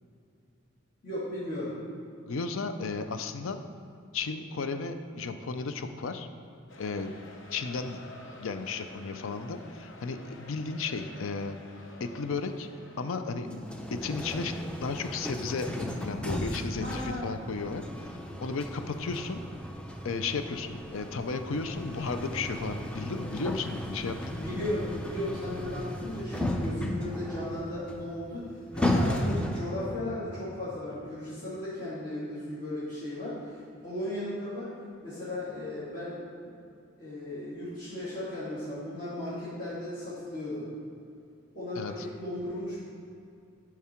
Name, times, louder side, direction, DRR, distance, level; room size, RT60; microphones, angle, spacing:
voice 1, 1.0-1.7 16.8-17.4 24.1-28.5 28.7-34.7 35.0-36.2 36.4-36.5 37.0-40.7 41.5-42.8, left 1 dB, 40° left, -12 dB, 2.0 m, -36 dB
voice 2, 2.3-3.6 4.1-6.3 6.8-7.1 7.5-8.1 8.4-11.6 12.0-12.7 13.0-13.6 13.9-17.8 18.4-19.4 20.0-24.4 41.7-42.1, left 4 dB, 80° left, 9 dB, 0.5 m, -34 dB
sound 1, 6.7-13.5, left 1 dB, 65° left, 0.9 m, -50 dB
sound 2, 13.5-29.9, left 1 dB, 5° left, 0.5 m, -35 dB
11.0 x 4.8 x 4.4 m, 2.6 s
head